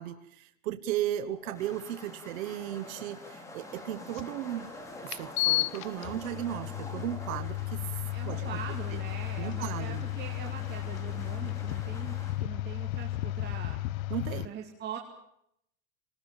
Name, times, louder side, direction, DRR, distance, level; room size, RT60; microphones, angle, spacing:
voice 1, 0.0-4.7 5.0-7.8 8.2-8.6 8.9-9.0 9.4-10.0 14.1-14.5, right 12 dB, 80° right, 10 dB, 1.4 m, -35 dB
sound 1, 1.3-12.4, left 1 dB, 5° left, 4.1 m, -46 dB
sound 2, 4.1-4.2 5.1-14.5, left 16 dB, 80° left, 0.8 m, -33 dB
voice 2, 8.1-14.1 14.4-15.0, right 8 dB, 25° right, 2 dB, 2.4 m, -42 dB
27.0 x 19.0 x 7.3 m, 0.76 s
supercardioid pair, 155°, 40 cm